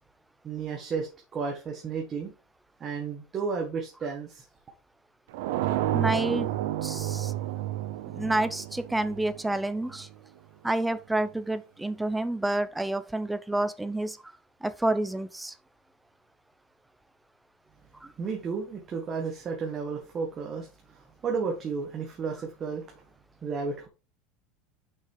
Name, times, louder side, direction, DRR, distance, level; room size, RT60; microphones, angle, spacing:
voice 1, 0.4-2.3 2.8-4.4 18.2-22.9 23.4-23.9, right 5 dB, 30° right, 1.7 m, -33 dB
sound 1, 5.3-10.1, right 13 dB, 75° right, 0.9 m, -30 dB
voice 2, 5.9-6.5 6.8-7.3 8.1-10.1 10.6-14.3 14.6-15.5 18.0-18.1, right 1 dB, 5° right, 0.8 m, -29 dB
6.4 x 5.9 x 4.8 m
supercardioid pair, 135°, 0 cm